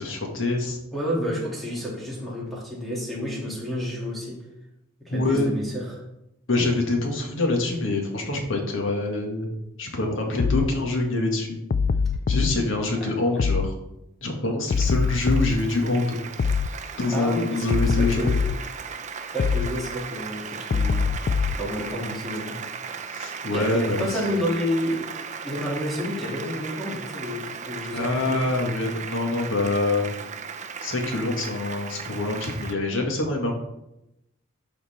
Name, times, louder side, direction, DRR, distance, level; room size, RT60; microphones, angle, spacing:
voice 1, 0.0-0.8 5.1-5.6 6.5-9.5 9.8-11.6 12.3-13.8 14.2-16.2 17.0-18.3 23.1-24.2 27.9-30.1 30.8-33.5, left 2 dB, 80° left, 2 dB, 1.8 m, -25 dB
voice 2, 0.9-4.4 5.0-6.0 17.1-18.4 19.3-21.0 21.6-22.6 23.5-25.1 25.4-28.4, equal, ahead, -5 dB, 2.7 m, -30 dB
sound 1, 10.4-10.7 11.7-12.6 13.4-13.7 14.7-15.6 16.4-16.7 17.7-18.6 19.4-19.7 20.7-21.6, left 5 dB, 45° left, 0.3 m, -23 dB
Applause, 14.7-32.7, right 6 dB, 35° right, 0.6 m, -37 dB
12.0 x 4.4 x 4.3 m, 0.87 s
head